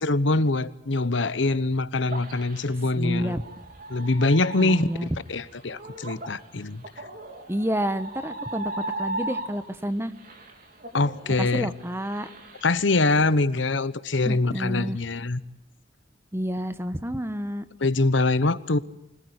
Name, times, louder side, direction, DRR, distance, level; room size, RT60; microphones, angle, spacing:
voice 1, 0.0-3.4 3.9-4.9 5.3-6.8 10.9-11.7 12.6-15.4 17.8-18.8, left 2 dB, 75° left, 15 dB, 1.0 m, -24 dB
sound 1, 2.1-9.8 10.2-13.1, right 2 dB, 45° right, 3.7 m, -37 dB
voice 2, 2.9-3.4 4.6-5.2 7.5-10.1 11.4-12.3 14.3-15.0 16.3-17.7, equal, 15° right, 12 dB, 1.1 m, -29 dB
25.5 x 19.5 x 9.7 m, 0.79 s
head